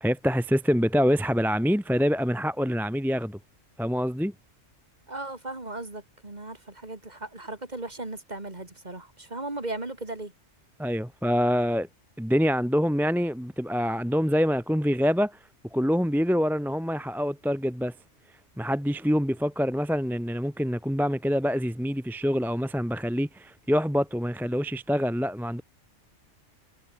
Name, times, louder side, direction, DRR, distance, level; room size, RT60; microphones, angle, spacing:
voice 1, 0.0-3.4 3.8-4.3 10.8-11.9 12.2-15.4 15.7-17.9 18.6-25.6, equal, ahead, 0.9 m, -25 dB
voice 2, 5.1-10.3, right 2 dB, 35° right, 3.0 m, -37 dB
omnidirectional pair, 1.3 m